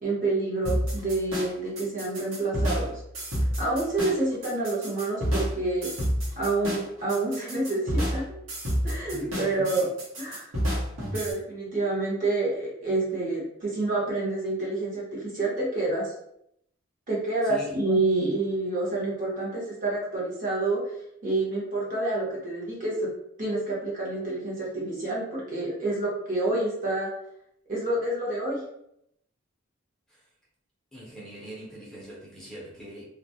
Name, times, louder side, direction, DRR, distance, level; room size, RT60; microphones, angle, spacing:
voice 1, 0.0-3.0 3.6-5.9 6.3-8.4 8.8-9.9 10.2-10.5 11.1-16.1 17.1-20.9 21.2-23.1 23.4-27.1 27.7-28.6, right 2 dB, 40° right, -5 dB, 0.9 m, -28 dB
sound 1, 0.6-11.3, equal, 85° right, 0.9 m, -29 dB
voice 2, 9.1-9.9 17.4-17.8 30.1-30.3 30.9-33.1, equal, ahead, -7 dB, 0.6 m, -42 dB
2.3 x 2.0 x 2.6 m, 0.76 s
head